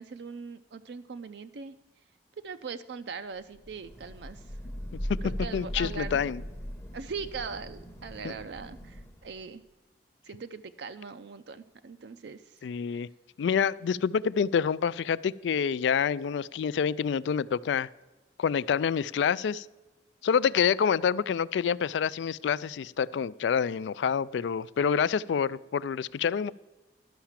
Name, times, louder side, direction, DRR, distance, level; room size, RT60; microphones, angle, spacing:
voice 1, 0.0-1.7 2.4-4.4 5.2-6.2 6.9-9.6 10.2-12.6, right 5 dB, 65° right, 9 dB, 0.4 m, -40 dB
Thunder / Rain, 3.6-9.4, equal, 15° left, 0.7 m, -39 dB
voice 2, 5.5-6.4 8.2-8.3 12.6-13.1 13.4-17.9 18.4-19.7 20.2-26.5, left 7 dB, 80° left, 19 dB, 0.3 m, -27 dB
11.5 x 5.8 x 7.2 m, 1.1 s
head